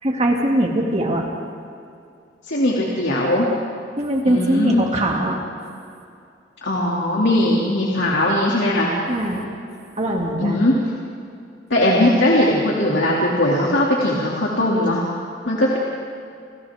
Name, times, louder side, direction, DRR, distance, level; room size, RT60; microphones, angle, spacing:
voice 1, 0.0-1.3 4.0-5.4 9.1-9.5 10.0-10.7, right 1 dB, 35° right, -1 dB, 2.6 m, -21 dB
voice 2, 2.4-3.5 4.2-4.8 6.6-8.9 10.4-10.7 11.7-15.0 15.5-15.8, left 1 dB, 80° left, -4 dB, 2.7 m, -19 dB
29.0 x 27.5 x 3.7 m, 2.5 s
head